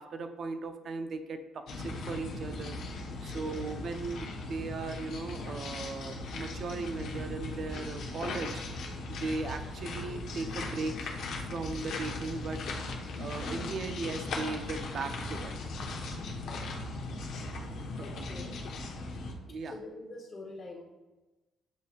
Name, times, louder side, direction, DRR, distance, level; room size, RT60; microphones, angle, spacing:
voice 1, 0.0-2.8 3.2-8.6 9.1-11.1 11.5-12.6 13.2-15.5 18.2-18.3 19.5-19.7, right 3 dB, 50° right, 7 dB, 0.4 m, -37 dB
sound 1, 1.7-19.3, left 2 dB, 70° left, 0.7 m, -38 dB
voice 2, 18.0-18.5 19.6-20.8, left 2 dB, 35° left, -5 dB, 0.8 m, -45 dB
8.0 x 2.7 x 2.4 m, 1.1 s
cardioid pair, 110°, 0 cm